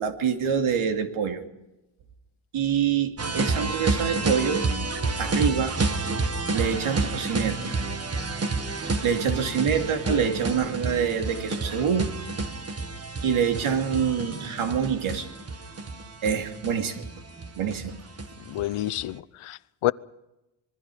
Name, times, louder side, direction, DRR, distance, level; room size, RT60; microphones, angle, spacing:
voice 1, 0.0-1.4 2.5-4.7 5.2-5.8 6.5-7.8 9.0-12.1 13.2-15.3 16.2-17.0 17.6-18.0, right 7 dB, 80° right, 2.7 m, -26 dB
sound 1, 3.2-19.0, right 3 dB, 30° right, 1.6 m, -29 dB
voice 2, 18.5-19.9, left 15 dB, 85° left, 0.8 m, -28 dB
26.0 x 22.0 x 5.0 m
wide cardioid pair, 160°, 49 cm